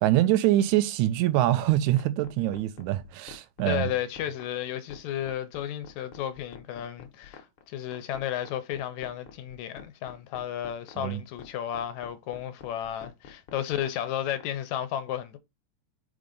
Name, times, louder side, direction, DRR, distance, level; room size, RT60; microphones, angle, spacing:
voice 1, 0.0-3.9 11.0-11.2, right 14 dB, 80° right, 2.0 m, -24 dB
sound 1, 1.7-14.5, left 7 dB, 55° left, 1.6 m, -47 dB
voice 2, 3.7-15.4, left 11 dB, 80° left, 2.0 m, -33 dB
5.2 x 3.7 x 5.2 m
omnidirectional pair, 3.4 m